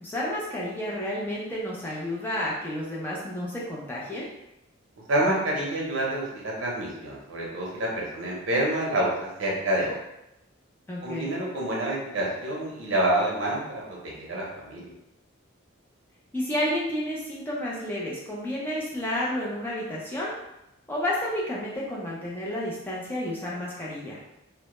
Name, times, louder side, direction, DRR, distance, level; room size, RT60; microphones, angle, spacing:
voice 1, 0.0-4.3 10.9-11.3 16.3-20.3 20.9-24.2, left 1 dB, 10° left, -5 dB, 0.4 m, -31 dB
voice 2, 5.1-10.0 11.0-14.9, right 1 dB, 70° right, -3 dB, 0.6 m, -28 dB
2.1 x 2.0 x 2.9 m, 0.89 s
head